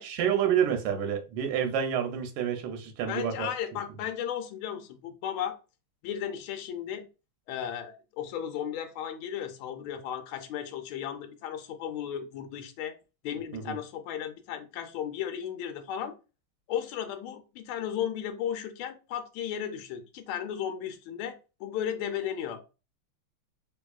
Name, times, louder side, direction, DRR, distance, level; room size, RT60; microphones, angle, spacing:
voice 1, 0.0-3.5 13.5-13.8, right 8 dB, 85° right, 1.6 m, -28 dB
voice 2, 3.1-5.6 6.0-7.1 7.5-13.0 13.2-16.1 16.7-22.6, left 9 dB, 80° left, 1.5 m, -35 dB
3.4 x 2.9 x 2.3 m
omnidirectional pair, 2.3 m